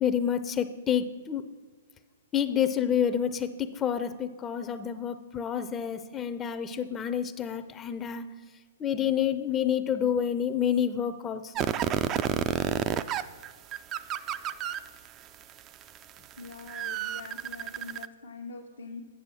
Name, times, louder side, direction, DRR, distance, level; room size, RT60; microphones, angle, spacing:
voice 1, 0.0-1.4 2.3-8.3 8.8-11.7, left 9 dB, 20° left, 10 dB, 0.5 m, -28 dB
sound 1, 11.6-15.1 15.6-18.1, right 11 dB, 30° right, 0.4 m, -29 dB
voice 2, 16.4-19.0, left 4 dB, 85° left, 1 dB, 0.9 m, -44 dB
8.3 x 6.8 x 6.2 m, 1.5 s
hypercardioid pair, 125°, 0 cm